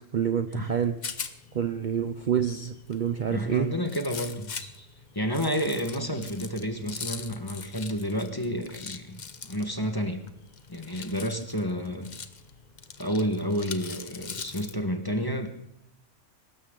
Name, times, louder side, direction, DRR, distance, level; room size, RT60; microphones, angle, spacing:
voice 1, 0.1-1.0 1.5-3.7, right 8 dB, 50° right, 10 dB, 0.7 m, -27 dB
Rattle, 0.6-14.8, left 5 dB, 40° left, 0.9 m, -42 dB
voice 2, 3.3-4.9 5.1-9.2 9.4-10.2 10.7-12.1 13.0-15.5, equal, 20° left, 6 dB, 1.5 m, -30 dB
22.5 x 12.5 x 3.9 m, 0.82 s
omnidirectional pair, 1.3 m